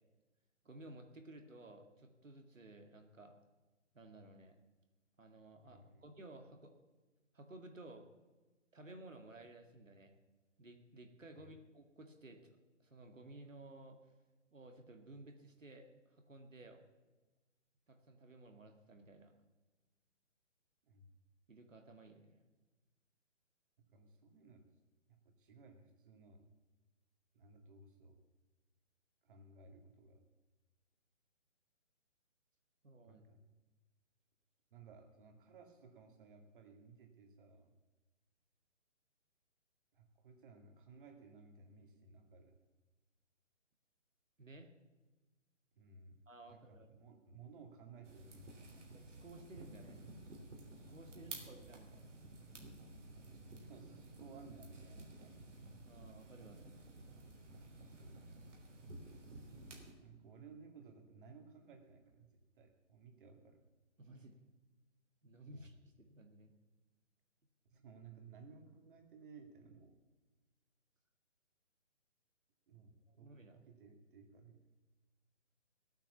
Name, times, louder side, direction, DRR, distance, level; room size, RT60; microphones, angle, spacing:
voice 1, 0.6-3.3 3.9-4.6 5.2-6.7 7.3-8.1 8.7-10.1 10.6-14.0 14.5-16.8 17.9-19.3 21.5-22.4 32.8-33.2 44.4-44.7 46.3-46.9 48.9-50.0 50.9-52.1 55.9-56.8 64.0-64.4 65.2-66.5 73.1-73.6, right 2 dB, 90° right, 4 dB, 2.2 m, -56 dB
voice 2, 5.6-6.0 11.4-11.5 20.8-21.1 23.9-24.7 25.1-26.5 27.3-28.2 29.2-30.2 33.0-33.4 34.7-37.7 39.9-42.6 45.7-46.2 46.5-48.8 51.1-51.8 53.6-55.5 57.9-58.3 60.0-62.3 62.5-63.6 65.5-65.7 67.7-69.9 72.7-74.6, right 4 dB, 45° right, 4 dB, 2.3 m, -58 dB
sound 1, 48.0-59.9, right 2 dB, 70° right, 3.5 m, -53 dB
15.5 x 9.1 x 7.1 m, 1.2 s
figure-of-eight pair, 145°, 37 cm